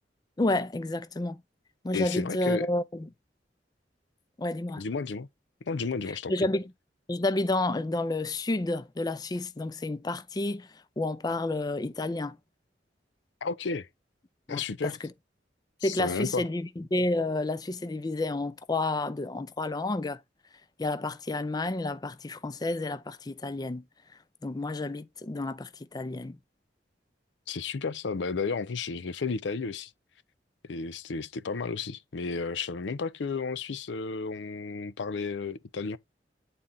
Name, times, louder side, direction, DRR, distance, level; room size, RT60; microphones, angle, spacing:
voice 1, 0.4-1.4 1.8-3.1 4.4-4.8 6.3-6.6 7.1-10.7 11.0-12.4 14.5-14.9 15.8-20.2 20.8-23.8 24.4-26.4, left 2 dB, 20° left, 0.4 m, -30 dB
voice 2, 1.9-2.7 4.8-5.3 5.7-6.3 13.4-13.9 14.5-15.0 15.8-16.4 27.5-29.9 30.6-36.0, left 4 dB, 80° left, 0.5 m, -32 dB
8.8 x 4.1 x 3.7 m
head